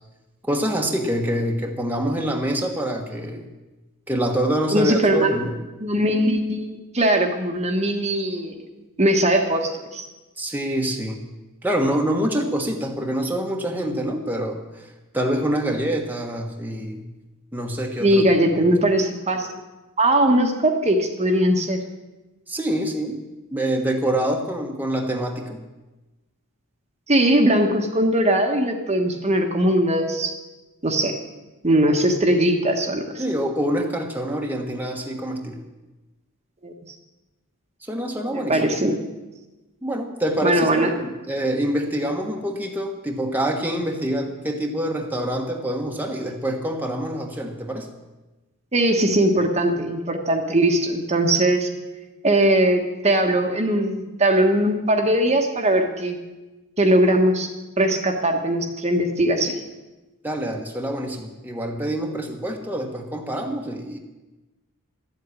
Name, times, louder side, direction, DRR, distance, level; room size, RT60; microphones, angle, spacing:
voice 1, 0.4-3.5 4.1-5.6 10.4-11.2 11.6-14.9 15.1-17.0 17.5-18.2 22.5-23.2 23.5-25.6 33.2-35.6 37.8-38.6 39.8-47.9 60.2-64.0, right 1 dB, 10° right, 1 dB, 1.3 m, -26 dB
voice 2, 4.7-5.4 5.8-8.5 9.0-10.1 18.0-19.6 20.0-21.8 27.1-30.4 30.8-31.2 31.6-33.2 36.6-36.7 38.3-39.0 40.4-40.9 48.7-51.7 52.2-56.2 56.8-57.5 57.8-59.6, right 1 dB, 30° right, 3 dB, 1.4 m, -20 dB
13.0 x 8.0 x 9.8 m, 1.1 s
head